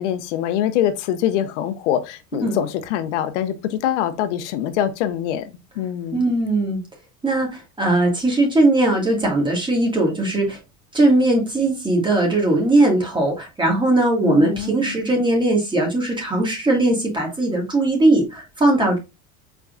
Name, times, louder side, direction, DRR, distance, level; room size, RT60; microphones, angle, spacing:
voice 1, 0.0-5.5 5.8-6.2 14.2-15.0, left 10 dB, 85° left, 0.8 m, -24 dB
voice 2, 6.1-6.8 7.2-10.6 10.9-19.0, right 2 dB, 15° right, 2.2 m, -19 dB
4.6 x 4.5 x 2.6 m
supercardioid pair, 125°, 34 cm